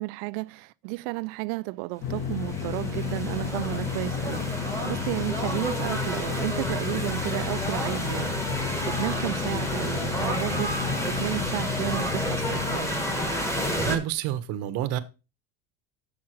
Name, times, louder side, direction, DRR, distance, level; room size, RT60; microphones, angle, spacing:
voice 1, 0.0-4.4 4.8-8.4 8.8-12.9, right 22 dB, 75° right, 0.5 m, -32 dB
sound 1, 2.0-12.8, left 7 dB, 45° left, 1.2 m, -32 dB
sound 2, 2.1-14.0, equal, 10° left, 1.2 m, -31 dB
voice 2, 13.7-15.0, right 12 dB, 55° right, 0.8 m, -29 dB
7.3 x 6.2 x 4.4 m
cardioid pair, 160°, 31 cm